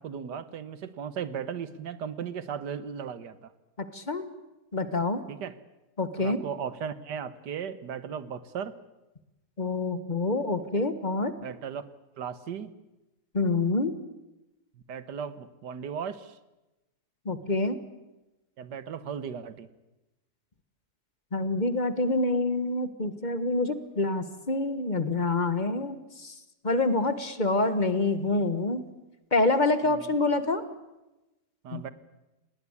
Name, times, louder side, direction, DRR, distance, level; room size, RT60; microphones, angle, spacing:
voice 1, 0.0-3.5 5.3-5.6 6.2-8.8 11.4-11.9 12.2-12.7 14.7-16.4 18.6-19.7 29.8-30.2 31.6-31.9, right 7 dB, 85° right, 14 dB, 1.7 m, -36 dB
voice 2, 3.8-4.3 4.7-5.2 6.0-6.4 9.6-11.3 13.3-13.9 17.2-17.8 21.3-26.4 26.6-28.8 29.3-30.6 31.7-31.8, left 2 dB, 30° left, 12 dB, 1.4 m, -27 dB
19.5 x 18.5 x 9.7 m, 1.0 s
omnidirectional pair, 1.8 m